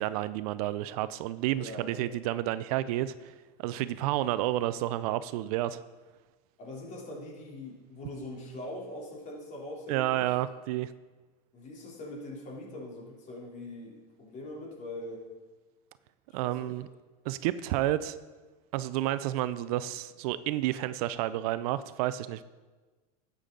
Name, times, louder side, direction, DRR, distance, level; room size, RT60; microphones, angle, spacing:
voice 1, 0.0-3.3 3.6-5.8 9.9-10.9 16.3-16.9 17.3-18.2 18.7-22.4, right 14 dB, 65° right, 15 dB, 0.5 m, -30 dB
voice 2, 1.5-2.0 6.6-10.3 11.5-15.3 16.3-16.7, left 1 dB, 35° left, -2 dB, 3.2 m, -42 dB
11.5 x 8.3 x 3.8 m, 1.3 s
supercardioid pair, 125°, 21 cm